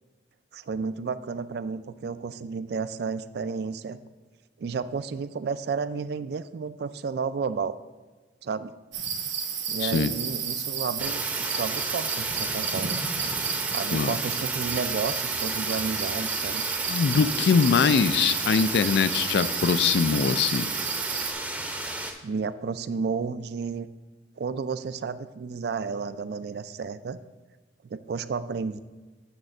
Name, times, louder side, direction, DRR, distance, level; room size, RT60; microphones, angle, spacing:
voice 1, 0.5-4.0 4.6-7.7 8.4-8.7 9.7-13.0 13.7-16.7 22.2-23.9 24.4-27.2 27.9-28.8, right 5 dB, 60° right, 14 dB, 0.3 m, -32 dB
sound 1, 8.9-21.3, right 7 dB, 80° right, 1.1 m, -31 dB
voice 2, 9.8-10.1 13.9-14.1 16.9-20.7, left 6 dB, 65° left, 14 dB, 0.3 m, -22 dB
sound 2, 11.0-22.1, right 1 dB, 10° right, 0.6 m, -33 dB
9.0 x 3.3 x 6.4 m, 1.3 s
head